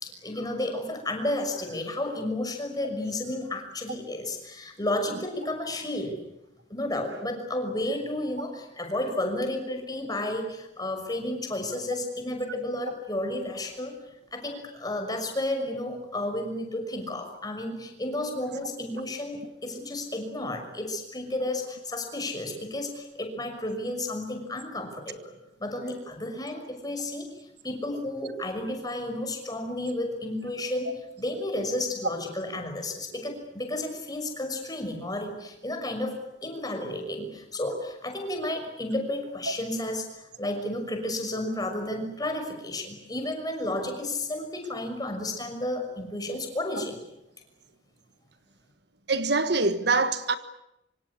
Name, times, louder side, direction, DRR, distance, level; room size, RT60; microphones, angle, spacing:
voice 1, 0.0-6.2 6.7-13.9 14.3-25.3 25.6-36.2 36.4-47.0, left 1 dB, 20° left, 6.1 m, -32 dB
voice 2, 49.1-50.4, right 3 dB, 60° right, 1.5 m, -24 dB
26.0 x 25.5 x 8.6 m
head